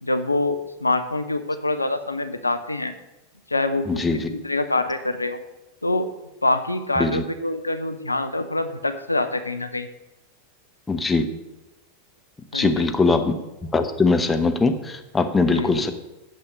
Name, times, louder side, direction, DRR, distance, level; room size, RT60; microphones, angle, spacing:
voice 1, 0.0-2.9 3.5-5.4 5.8-6.1 6.4-9.9 12.5-13.2 15.5-15.8, left 2 dB, 85° left, 11 dB, 0.5 m, -25 dB
voice 2, 3.9-4.3 7.0-7.2 10.9-11.3 12.5-13.4 13.7-15.9, left 3 dB, 15° left, 7 dB, 0.9 m, -21 dB
8.7 x 6.4 x 6.4 m, 1.0 s
figure-of-eight pair, 90°, 0 cm